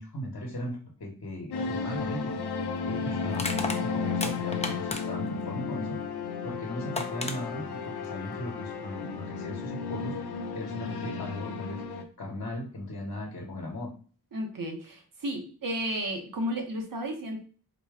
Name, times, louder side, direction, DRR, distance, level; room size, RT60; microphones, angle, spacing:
voice 1, 0.0-2.4 2.8-6.0 6.4-10.1 10.5-11.8 12.2-13.9, left 1 dB, 50° left, -1 dB, 1.0 m, -37 dB
sound 1, 1.5-12.0, left 5 dB, 85° left, 0.6 m, -33 dB
Crushing, 2.0-2.1 3.3-5.3 6.5-6.6 6.9-7.4, left 2 dB, 20° left, 0.5 m, -33 dB
voice 2, 14.3-17.4, equal, 60° right, 2 dB, 1.0 m, -33 dB
4.0 x 2.2 x 3.5 m, 0.40 s
wide cardioid pair, 85°, 38 cm